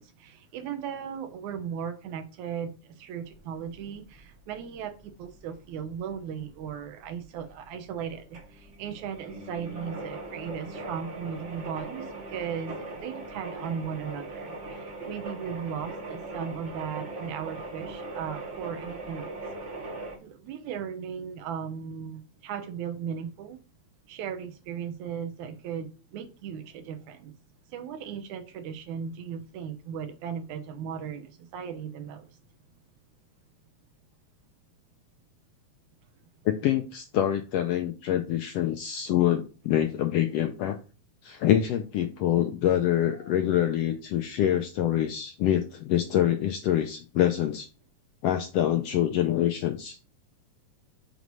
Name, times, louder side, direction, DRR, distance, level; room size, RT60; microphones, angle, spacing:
voice 1, 0.0-19.4 20.2-23.6 24.1-27.3 27.7-32.3 43.1-43.3, right 7 dB, 85° right, 2.3 m, -37 dB
sound 1, 3.2-20.2, right 2 dB, 55° right, 0.7 m, -40 dB
voice 2, 36.4-40.8 41.2-47.7 48.2-50.0, left 11 dB, 85° left, 1.4 m, -25 dB
6.4 x 3.1 x 5.3 m
omnidirectional pair, 3.3 m